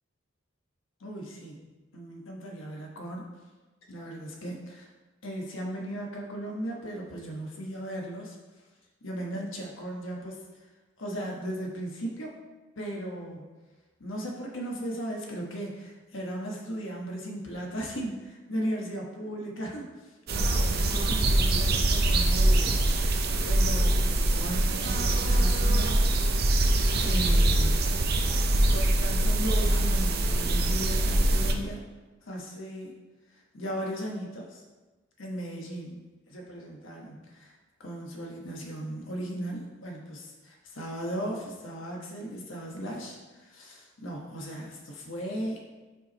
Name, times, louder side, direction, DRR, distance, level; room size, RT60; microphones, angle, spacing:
voice 1, 1.0-1.6 1.9-3.3 3.9-4.9 5.2-8.4 9.0-10.4 11.0-12.4 12.8-13.5 14.0-19.9 20.3-26.0 27.0-27.9 28.7-31.8 32.2-33.0 33.5-34.6 35.2-36.0 36.3-37.5 37.8-45.6, right 1 dB, 80° left, -1 dB, 1.3 m, -37 dB
sound 1, 20.3-31.5, right 1 dB, 55° right, 0.6 m, -23 dB
5.8 x 4.7 x 4.2 m, 1.2 s
head